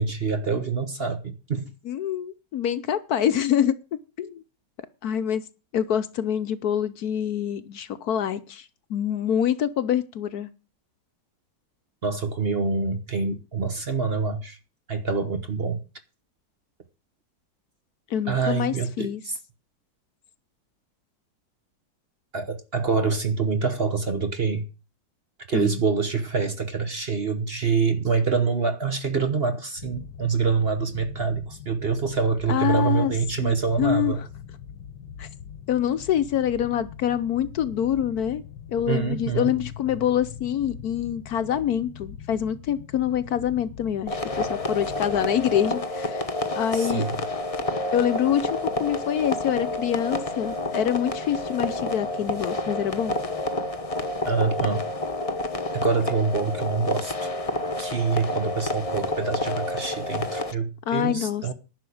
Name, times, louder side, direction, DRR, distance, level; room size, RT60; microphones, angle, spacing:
voice 1, 0.0-1.7 12.0-14.6 14.9-15.8 18.3-19.4 22.3-24.7 25.5-34.2 38.9-39.5 46.7-47.2 54.3-54.9 55.7-57.3 57.8-61.5, right 5 dB, 40° right, 1.1 m, -26 dB
voice 2, 1.9-3.8 4.2-4.4 5.0-5.4 5.7-10.5 18.1-19.2 25.5-25.8 32.5-33.1 33.4-34.2 35.2-35.3 35.7-38.4 38.7-46.2 46.6-47.1 47.9-53.2 60.9-61.5, left 9 dB, 65° left, 1.1 m, -26 dB
sound 1, 29.8-45.6, left 8 dB, 85° left, 1.6 m, -42 dB
sound 2, 44.1-60.5, left 2 dB, 25° left, 0.8 m, -29 dB
11.0 x 6.3 x 8.5 m
omnidirectional pair, 1.9 m